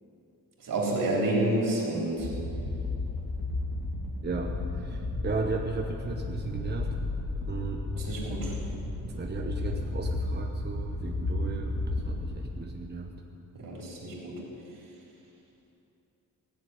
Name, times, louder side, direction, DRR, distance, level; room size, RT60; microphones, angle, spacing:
voice 1, 0.6-2.3 8.0-8.6 13.5-14.4, right 1 dB, 75° right, -3 dB, 3.7 m, -29 dB
sound 1, 2.2-12.5, left 2 dB, 85° left, 2.8 m, -33 dB
voice 2, 4.2-7.0 7.3-8.3 9.1-13.1, right 3 dB, 30° right, 1 dB, 1.0 m, -35 dB
17.5 x 7.6 x 9.5 m, 2.9 s
wide cardioid pair, 135°, 33 cm